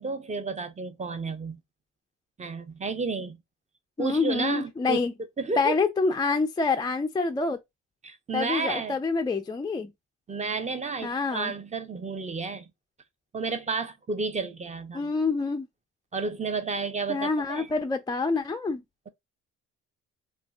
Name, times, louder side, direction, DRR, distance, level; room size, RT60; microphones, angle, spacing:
voice 1, 0.0-1.6 2.4-3.4 4.0-5.1 5.4-5.7 8.0-9.0 10.3-12.7 13.3-15.1 16.1-17.7, right 4 dB, 25° right, 0.7 m, -31 dB
voice 2, 4.0-5.1 5.6-7.6 8.3-9.9 11.0-11.5 14.9-15.7 17.1-18.8, left 4 dB, 15° left, 0.3 m, -27 dB
3.2 x 2.5 x 2.2 m
cardioid pair, 90°, 30 cm